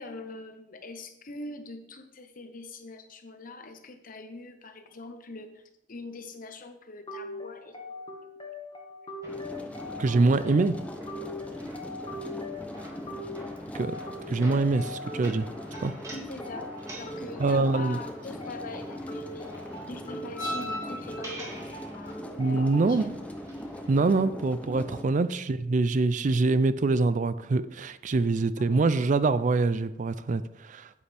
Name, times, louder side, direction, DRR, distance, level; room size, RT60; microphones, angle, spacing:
voice 1, 0.0-7.9 16.1-23.1 28.6-29.0, left 2 dB, 50° left, 1.0 m, -43 dB
sound 1, 7.1-23.1, left 2 dB, 30° left, 1.5 m, -42 dB
sound 2, 9.2-24.2, equal, 20° right, 2.5 m, -45 dB
sound 3, 9.3-25.0, left 1 dB, 10° left, 0.7 m, -41 dB
voice 2, 10.0-10.8 13.7-14.0 14.3-15.5 15.8-15.9 17.4-18.0 22.4-23.1 23.9-31.0, right 3 dB, 45° right, 0.4 m, -24 dB
9.7 x 8.1 x 3.4 m
head